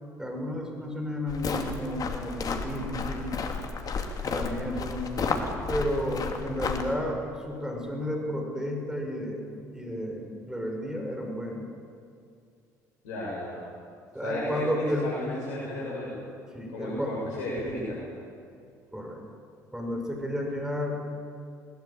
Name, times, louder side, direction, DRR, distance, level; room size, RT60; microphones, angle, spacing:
voice 1, 0.2-3.4 4.2-5.4 5.7-7.2 7.4-11.6 14.1-15.1 16.5-17.1 18.9-19.2 19.7-21.1, equal, 5° right, 1 dB, 6.2 m, -32 dB
sound 1, 1.3-6.9, left 4 dB, 45° left, 2.9 m, -32 dB
voice 2, 13.0-13.5 14.2-16.1 16.7-18.0, left 1 dB, 75° left, -5 dB, 7.3 m, -34 dB
21.5 x 20.5 x 9.0 m, 2.4 s
hypercardioid pair, 60°, 9 cm